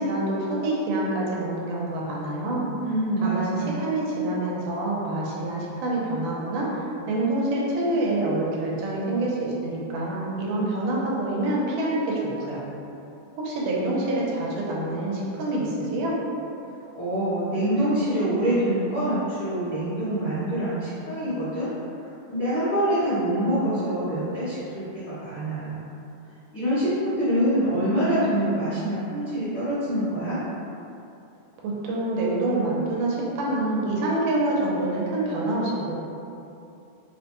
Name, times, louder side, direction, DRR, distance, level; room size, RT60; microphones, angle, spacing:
voice 1, 0.0-2.7 3.2-12.6 13.4-16.2 31.6-35.9, right 2 dB, 85° right, -4 dB, 2.3 m, -26 dB
voice 2, 2.8-3.8 16.9-21.7 22.3-25.8 26.5-30.4, right 1 dB, 80° left, -16 dB, 0.8 m, -25 dB
5.5 x 2.2 x 2.9 m, 2.7 s
omnidirectional pair, 3.7 m